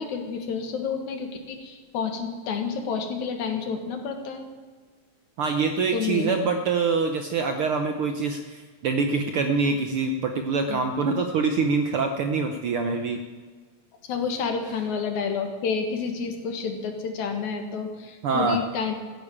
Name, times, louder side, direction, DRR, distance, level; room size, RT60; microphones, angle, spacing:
voice 1, 0.0-4.5 5.9-6.3 10.7-10.8 14.1-18.9, left 5 dB, 75° left, 5 dB, 3.0 m, -29 dB
voice 2, 5.4-13.2 18.2-18.6, right 4 dB, 65° right, 6 dB, 1.4 m, -25 dB
15.5 x 10.0 x 8.6 m, 1.5 s
omnidirectional pair, 3.4 m